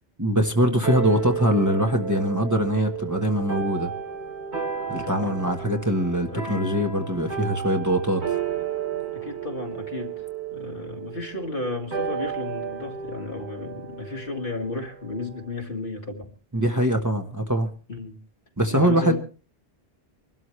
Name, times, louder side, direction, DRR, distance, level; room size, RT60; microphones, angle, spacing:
voice 1, 0.2-3.9 4.9-8.4 16.5-17.7 18.6-19.2, right 1 dB, 20° right, 1.3 m, -23 dB
sound 1, 0.8-15.6, right 7 dB, 50° right, 4.3 m, -33 dB
voice 2, 5.0-5.4 6.3-6.7 9.1-10.2 10.5-16.3 17.9-18.2 18.7-19.2, left 2 dB, 60° left, 2.2 m, -33 dB
25.5 x 12.5 x 3.2 m
omnidirectional pair, 1.0 m